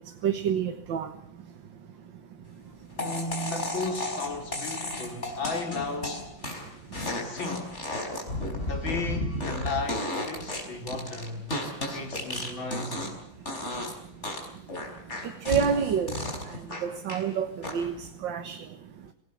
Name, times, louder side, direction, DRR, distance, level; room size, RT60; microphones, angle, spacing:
voice 1, 0.2-1.1 15.5-16.2 16.8-17.5 17.7-17.9 18.2-18.6, right 8 dB, 75° right, 2.0 m, -27 dB
voice 2, 2.9-6.3 7.1-7.8 8.6-11.5 11.9-13.1, left 2 dB, 85° left, 5.1 m, -34 dB
sound 1, 3.0-13.2 13.5-13.9 14.2-17.3 17.6-18.1, left 1 dB, 35° left, 5.4 m, -33 dB
27.0 x 18.0 x 7.2 m
omnidirectional pair, 2.1 m